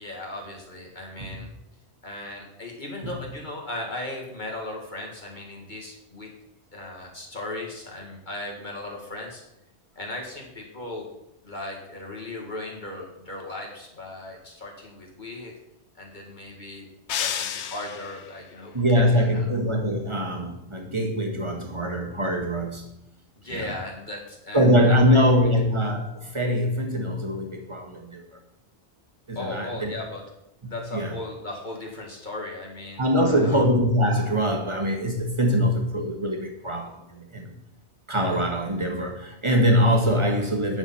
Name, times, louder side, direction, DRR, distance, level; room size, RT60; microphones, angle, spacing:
voice 1, 0.0-1.5 2.0-6.3 6.7-9.4 10.0-11.1 11.4-15.5 16.0-16.9 17.2-19.5 23.4-25.6 29.4-30.3 30.6-33.6, left 2 dB, 45° left, -1 dB, 2.1 m, -37 dB
sound 1, 17.1-18.4, left 9 dB, 80° left, 0.9 m, -30 dB
voice 2, 18.7-22.8 23.5-23.7 24.5-28.2 29.3-29.9 30.6-31.1 33.0-37.5 38.1-40.8, equal, 25° right, 2 dB, 1.7 m, -23 dB
9.5 x 6.3 x 5.7 m, 0.83 s
omnidirectional pair, 1.1 m